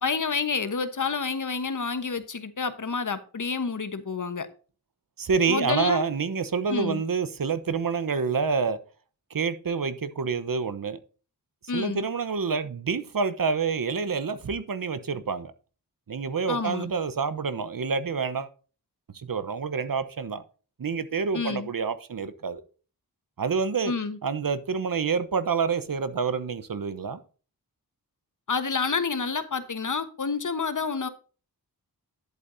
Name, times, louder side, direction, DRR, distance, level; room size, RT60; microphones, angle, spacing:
voice 1, 0.0-4.5 5.5-6.0 6.7-7.0 11.7-12.0 16.5-16.9 21.3-21.7 23.9-24.2 28.5-31.1, left 5 dB, 50° left, 1.2 m, -29 dB
voice 2, 5.2-8.8 9.3-11.0 11.7-15.5 16.1-18.5 19.1-20.4 20.8-22.6 23.4-23.9 24.2-27.2, right 5 dB, 60° right, 1.0 m, -27 dB
11.0 x 8.1 x 2.7 m
wide cardioid pair, 75°, 38 cm